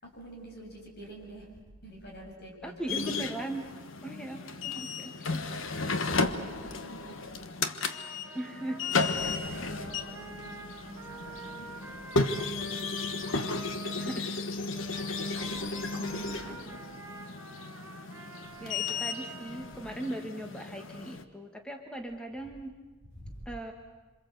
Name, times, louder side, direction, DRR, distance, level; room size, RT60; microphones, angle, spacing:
voice 1, 0.0-1.5 1.8-2.8 6.0-7.2 9.2-11.7 11.9-12.5 15.2-16.8 23.1-23.4, right 1 dB, 55° left, 0 dB, 7.3 m, -46 dB
voice 2, 2.6-3.7 4.0-5.4 8.3-8.8 9.5-9.6 14.0-14.4 18.6-22.7 23.4-23.7, right 1 dB, 5° left, 3 dB, 1.5 m, -39 dB
sound 1, 2.9-21.2, left 3 dB, 75° left, 1.3 m, -34 dB
Trumpet, 7.8-14.3 14.7-20.1, right 2 dB, 10° right, 4.0 m, -47 dB
27.0 x 26.5 x 8.0 m, 1.2 s
head